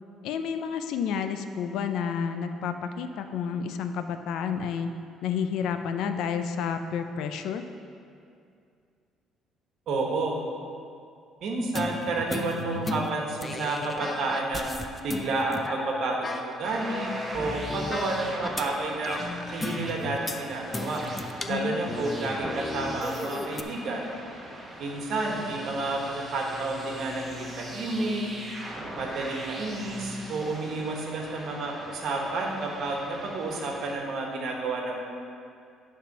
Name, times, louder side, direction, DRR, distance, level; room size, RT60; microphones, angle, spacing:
voice 1, 0.2-4.9 5.2-7.6 21.5-21.8, left 7 dB, 75° left, 8 dB, 0.4 m, -30 dB
voice 2, 9.9-10.4 11.4-14.7 15.0-19.2 19.5-21.0 21.5-24.0 24.8-28.2 28.9-35.0, right 2 dB, 60° right, 0 dB, 1.3 m, -30 dB
sound 1, 11.8-18.7 19.0-20.4 20.7-23.6, left 2 dB, 15° left, 0.4 m, -35 dB
sound 2, 16.6-33.9, right 1 dB, 15° right, 1.1 m, -41 dB
10.0 x 3.6 x 5.9 m, 2.4 s
cardioid pair, 135°, 0 cm